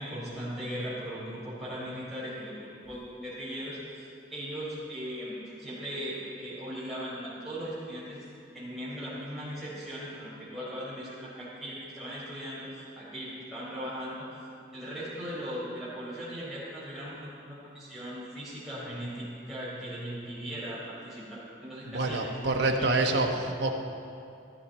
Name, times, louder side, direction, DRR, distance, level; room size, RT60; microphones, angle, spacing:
voice 1, 0.0-8.2 8.5-14.3 14.7-22.3 22.7-23.1, equal, ahead, -12 dB, 4.1 m, -38 dB
voice 2, 21.8-23.7, right 2 dB, 65° right, 2 dB, 1.2 m, -27 dB
14.5 x 13.5 x 4.3 m, 2.5 s
head